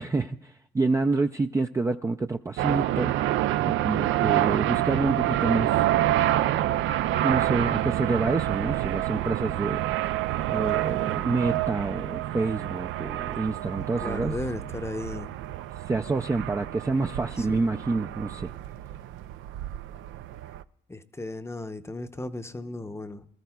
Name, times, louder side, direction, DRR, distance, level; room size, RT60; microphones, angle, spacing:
voice 1, 0.0-3.2 3.6-5.9 7.1-9.8 10.5-14.3 15.9-18.5, right 3 dB, 15° right, 4 dB, 0.4 m, -28 dB
sound 1, 2.6-20.6, right 14 dB, 80° right, 0.4 m, -28 dB
voice 2, 14.0-15.3 17.4-17.6 20.9-23.3, left 2 dB, 15° left, 9 dB, 0.7 m, -35 dB
23.5 x 13.5 x 2.3 m, 0.70 s
cardioid pair, 90°, 20 cm